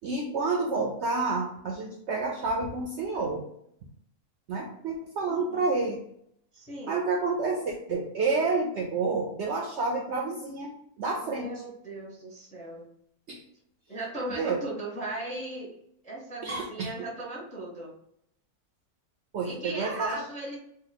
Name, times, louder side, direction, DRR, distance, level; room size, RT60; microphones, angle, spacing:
voice 1, 0.0-3.4 4.5-6.0 6.9-11.5 13.3-13.4 14.4-14.6 16.4-16.9 19.3-20.2, right 3 dB, 65° right, 0 dB, 0.7 m, -29 dB
voice 2, 5.3-5.7 6.5-7.0 11.2-12.9 13.9-15.8 16.0-17.9 19.4-20.6, right 2 dB, 10° left, -3 dB, 0.4 m, -37 dB
3.1 x 2.2 x 3.9 m, 0.73 s
omnidirectional pair, 1.6 m